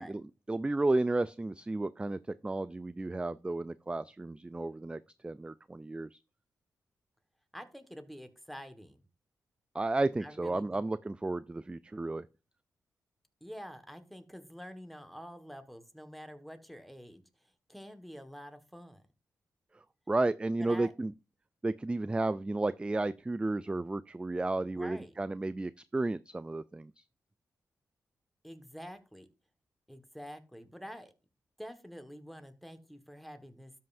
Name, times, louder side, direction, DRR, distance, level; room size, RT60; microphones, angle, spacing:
voice 1, 0.0-6.2 9.7-12.3 19.7-21.1 21.6-27.0, right 2 dB, 15° right, 0.3 m, -33 dB
voice 2, 7.5-9.0 10.2-10.8 13.4-17.2 17.7-19.0 20.6-20.9 24.7-25.1 28.4-29.3 29.9-31.1 31.6-33.7, equal, ahead, 1.5 m, -47 dB
12.5 x 5.6 x 2.6 m
cardioid pair, 50°, 6 cm